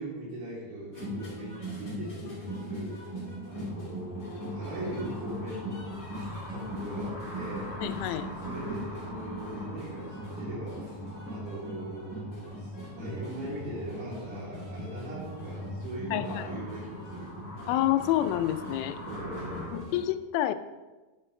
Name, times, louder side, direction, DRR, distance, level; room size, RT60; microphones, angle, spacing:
voice 1, 0.0-3.0 3.4-7.8 8.2-17.3 19.1-19.9, right 1 dB, 90° right, -6 dB, 6.0 m, -40 dB
sound 1, 0.9-20.0, equal, 35° left, 1.2 m, -40 dB
sound 2, 2.9-19.7, equal, 10° left, 1.8 m, -46 dB
voice 2, 7.8-8.3 16.1-16.5 17.7-19.0 19.7-20.5, left 13 dB, 85° left, 10 dB, 3.2 m, -28 dB
10.0 x 8.8 x 3.2 m, 1.2 s
omnidirectional pair, 6.0 m